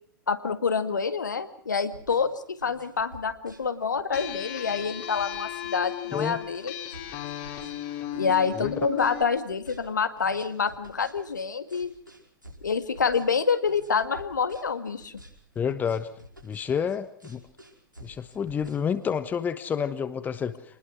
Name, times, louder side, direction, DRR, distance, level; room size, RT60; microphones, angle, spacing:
voice 1, 0.3-6.7 8.2-11.9 12.6-15.1, left 5 dB, 70° left, 10 dB, 2.0 m, -27 dB
sound 1, 1.8-19.2, equal, 90° right, 5.2 m, -49 dB
sound 2, 4.1-9.2, left 12 dB, 40° left, 3.1 m, -36 dB
voice 2, 15.5-16.1 16.4-17.4 18.0-20.6, left 7 dB, 15° left, 13 dB, 1.2 m, -29 dB
27.5 x 20.0 x 6.2 m, 0.62 s
figure-of-eight pair, 105°, 10 cm